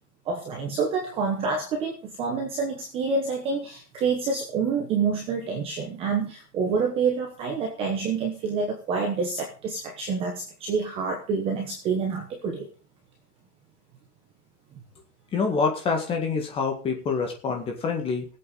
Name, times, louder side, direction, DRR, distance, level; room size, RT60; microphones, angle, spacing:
voice 1, 0.3-12.7, right 5 dB, 10° right, 1 dB, 1.0 m, -27 dB
voice 2, 15.3-18.3, left 5 dB, 10° left, 3 dB, 1.9 m, -26 dB
19.0 x 8.3 x 4.1 m, 0.37 s
hypercardioid pair, 170°, 48 cm